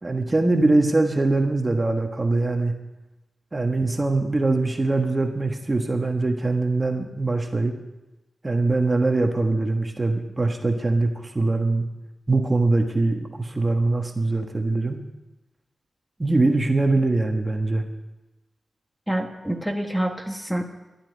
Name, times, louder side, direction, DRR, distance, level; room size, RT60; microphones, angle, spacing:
voice 1, 0.0-2.7 3.5-7.7 8.4-11.8 12.3-15.0 16.2-17.8, right 2 dB, 25° right, 4 dB, 1.5 m, -22 dB
voice 2, 19.1-20.6, right 1 dB, ahead, 2 dB, 1.6 m, -27 dB
12.5 x 8.8 x 9.6 m, 1.0 s
cardioid pair, 70°, 0 cm